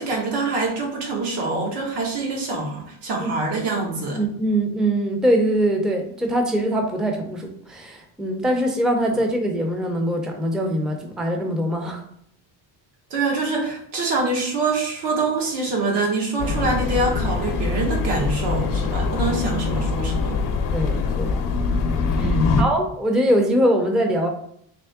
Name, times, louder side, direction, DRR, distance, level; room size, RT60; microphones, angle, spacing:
voice 1, 0.0-4.2 13.1-20.4 22.2-22.6, right 3 dB, 90° right, 0 dB, 1.4 m, -25 dB
voice 2, 4.1-12.0 19.0-19.4 20.7-21.4 22.1-24.3, right 1 dB, ahead, 3 dB, 0.4 m, -23 dB
sound 1, 16.4-22.6, left 4 dB, 55° left, 0.5 m, -23 dB
3.6 x 3.0 x 3.4 m, 0.68 s
cardioid pair, 155°, 39 cm